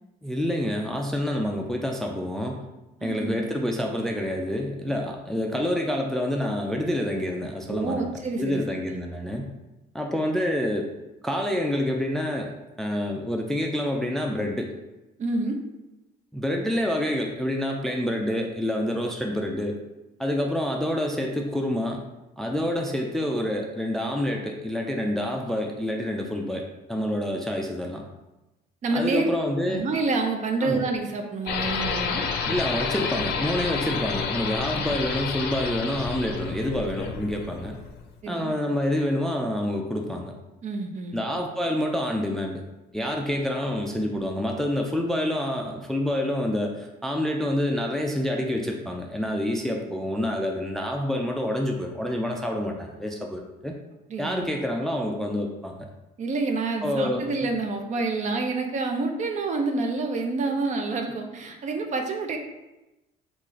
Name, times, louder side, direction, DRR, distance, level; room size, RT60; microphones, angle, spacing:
voice 1, 0.2-2.6 3.0-8.1 8.4-9.5 9.9-10.9 11.2-12.5 12.8-14.7 16.3-19.8 20.2-22.0 22.4-26.6 26.9-28.1 28.9-29.8 30.6-30.8 32.5-37.8 38.3-40.3 41.1-42.6 42.9-53.7 54.2-55.8 56.8-57.3, left 1 dB, ahead, 1 dB, 0.3 m, -27 dB
voice 2, 3.0-3.4 7.7-8.6 8.9-9.0 15.2-15.6 28.8-29.3 29.7-32.3 34.8-34.9 38.2-38.5 40.6-41.2 54.1-54.5 56.2-62.4, right 3 dB, 45° right, 4 dB, 0.5 m, -28 dB
sound 1, 31.5-38.1, left 6 dB, 70° left, 0.5 m, -30 dB
3.1 x 2.5 x 3.8 m, 1.0 s
cardioid pair, 110°, 17 cm